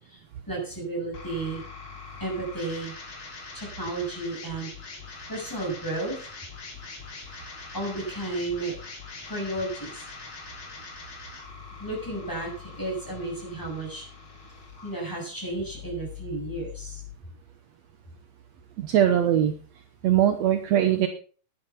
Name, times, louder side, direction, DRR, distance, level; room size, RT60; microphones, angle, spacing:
voice 1, 0.1-1.6 2.2-2.9 3.5-4.7 5.3-6.2 7.7-8.7 9.3-10.0 11.8-14.1 14.8-17.0, right 2 dB, 5° left, -2 dB, 7.2 m, -33 dB
sound 1, 1.1-17.1, left 5 dB, 50° left, 4.3 m, -43 dB
voice 2, 18.8-19.5 20.0-21.1, right 10 dB, 70° right, 7 dB, 2.1 m, -21 dB
11.0 x 10.5 x 5.9 m, 0.39 s
omnidirectional pair, 3.4 m